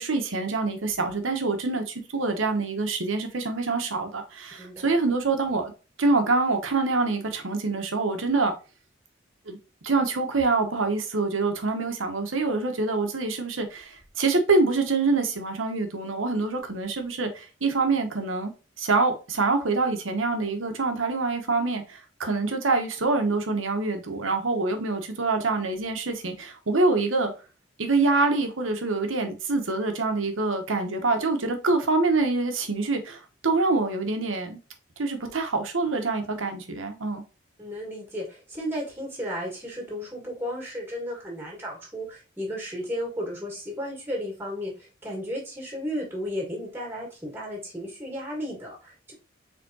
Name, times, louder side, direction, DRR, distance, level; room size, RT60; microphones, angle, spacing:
voice 1, 0.0-5.7 6.0-8.5 9.5-9.6 9.8-18.5 18.8-27.3 27.8-34.6 35.0-37.2, right 3 dB, 80° right, 1.0 m, -25 dB
voice 2, 4.6-4.9 37.6-44.7 45.0-49.1, equal, 10° right, 1.7 m, -34 dB
4.5 x 3.5 x 2.7 m
head